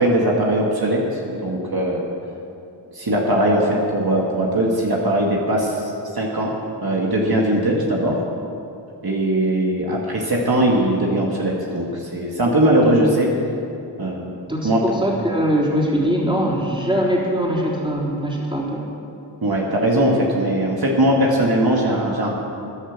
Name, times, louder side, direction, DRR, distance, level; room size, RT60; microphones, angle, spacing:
voice 1, 0.0-2.0 2.9-6.5 6.8-8.2 9.0-13.3 14.0-14.3 14.6-14.8 19.4-22.3, right 1 dB, 55° right, -2 dB, 2.1 m, -20 dB
voice 2, 14.5-18.9, equal, 10° right, -4 dB, 3.8 m, -22 dB
14.5 x 10.5 x 7.4 m, 2.7 s
cardioid pair, 50°, 45 cm